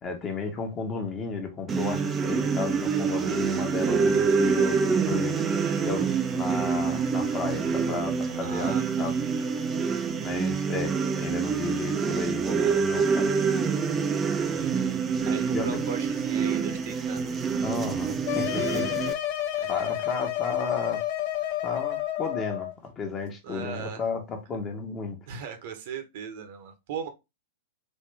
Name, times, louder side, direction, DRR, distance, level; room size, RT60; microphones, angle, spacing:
voice 1, 0.0-5.4 5.8-9.1 10.2-13.4 15.5-15.8 17.6-18.9 19.7-21.0 21.6-25.2, left 4 dB, 25° left, 1.2 m, -33 dB
sound 1, 1.7-19.1, right 5 dB, 20° right, 0.7 m, -26 dB
voice 2, 8.4-9.1 14.5-15.0 15.3-17.3 19.6-20.1 23.4-24.0 25.3-27.1, right 7 dB, 50° right, 1.1 m, -38 dB
sound 2, 18.3-22.7, left 13 dB, 45° left, 0.9 m, -30 dB
4.1 x 3.0 x 3.5 m
figure-of-eight pair, 100°, 0 cm